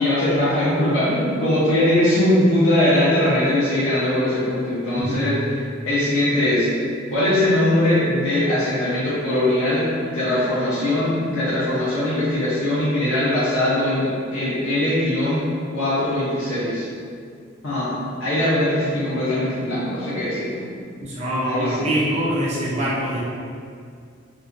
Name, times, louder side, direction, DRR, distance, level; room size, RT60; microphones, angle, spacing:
voice 1, 0.0-5.4 5.9-6.7 7.1-15.4 15.7-16.8 17.6-17.9 18.2-20.6 21.4-21.9, left 1 dB, 75° left, -11 dB, 0.6 m, -21 dB
voice 2, 5.0-5.4 21.0-23.2, right 1 dB, 35° right, -6 dB, 0.5 m, -24 dB
2.3 x 2.2 x 2.5 m, 2.2 s
head